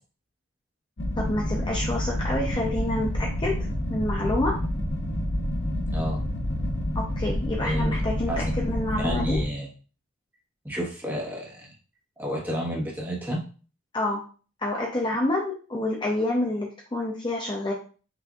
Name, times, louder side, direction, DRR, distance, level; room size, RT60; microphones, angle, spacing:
sound 1, 1.0-9.5, left 1 dB, 50° left, 0.9 m, -28 dB
voice 1, 1.2-3.6 3.9-4.6 6.9-9.4 13.9-14.2 14.6-17.7, left 1 dB, 20° left, -2 dB, 0.5 m, -28 dB
voice 2, 7.6-7.9 8.3-8.5 9.0-9.7 10.6-11.7 12.2-13.4, equal, 10° right, -3 dB, 1.1 m, -30 dB
5.9 x 2.6 x 2.4 m, 0.37 s
head